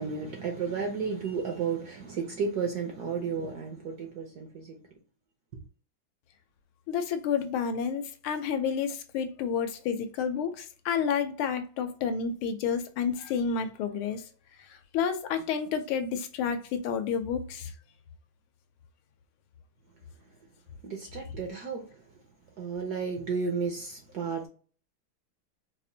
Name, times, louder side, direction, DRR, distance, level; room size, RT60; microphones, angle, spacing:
voice 1, 0.0-4.8 20.8-22.0 22.6-24.5, right 5 dB, 65° right, 1.0 m, -33 dB
voice 2, 6.9-14.2 14.7-17.7, left 7 dB, 80° left, 1.4 m, -30 dB
4.8 x 2.5 x 2.6 m
omnidirectional pair, 2.4 m